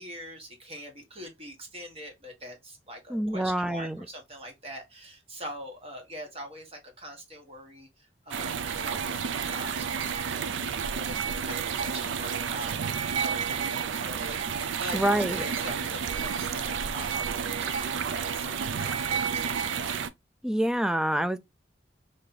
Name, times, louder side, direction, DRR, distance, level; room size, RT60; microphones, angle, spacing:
voice 1, 0.0-8.5 8.8-12.8 13.1-19.9, equal, 35° right, 1.2 m, -43 dB
voice 2, 3.1-4.0 14.9-15.4 20.4-21.4, right 1 dB, 5° right, 0.3 m, -26 dB
sound 1, 8.3-20.1, right 6 dB, 75° right, 0.4 m, -31 dB
3.2 x 2.7 x 3.8 m
head